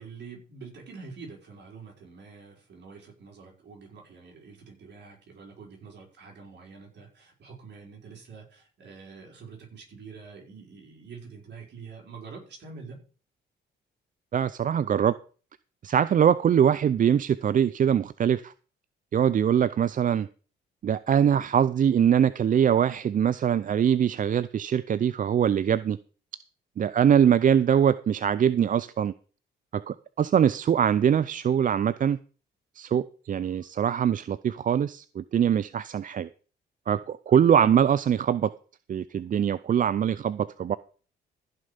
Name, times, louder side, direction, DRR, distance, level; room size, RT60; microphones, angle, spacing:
voice 1, 0.0-13.0 36.9-37.0, right 5 dB, 60° right, 0 dB, 5.5 m, -46 dB
voice 2, 14.3-15.1 15.8-18.5 19.1-20.3 20.8-26.0 26.8-29.1 29.7-32.2 32.8-36.3 36.9-38.5 38.9-40.8, right 8 dB, 45° right, 16 dB, 0.5 m, -23 dB
15.5 x 6.5 x 5.2 m, 0.39 s
cardioid pair, 90°, 20 cm